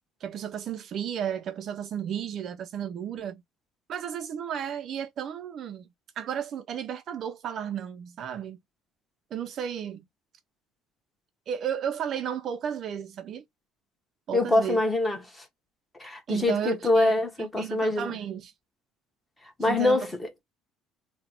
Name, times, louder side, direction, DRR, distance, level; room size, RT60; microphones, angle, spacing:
voice 1, 0.2-3.4 3.9-5.9 6.2-8.6 9.3-10.0 11.5-13.4 14.3-14.8 16.3-17.1 17.4-18.5 19.6-20.1, right 9 dB, 45° right, 0.3 m, -33 dB
voice 2, 14.3-15.4 16.0-18.2 19.6-20.4, left 2 dB, 10° left, 1.0 m, -25 dB
3.8 x 2.0 x 4.2 m
cardioid pair, 145°, 0 cm